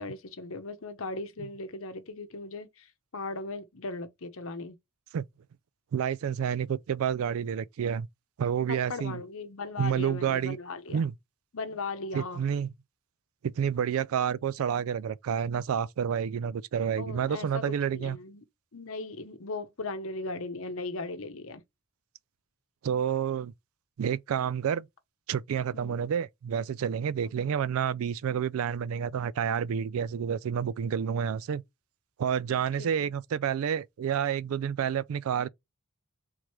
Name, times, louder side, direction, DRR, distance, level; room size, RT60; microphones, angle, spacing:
voice 1, 0.0-4.8 8.7-11.0 11.5-12.4 17.0-18.4 18.7-21.6 25.7-26.0 27.2-27.3 32.8-33.1, left 3 dB, 70° left, 0.8 m, -38 dB
voice 2, 5.9-8.1 8.4-9.2 9.8-10.6 10.9-11.1 12.1-12.7 13.4-18.2 22.8-23.5 24.0-24.9 25.3-31.6 32.2-35.5, right 8 dB, 75° right, 0.3 m, -29 dB
3.7 x 3.1 x 4.4 m
head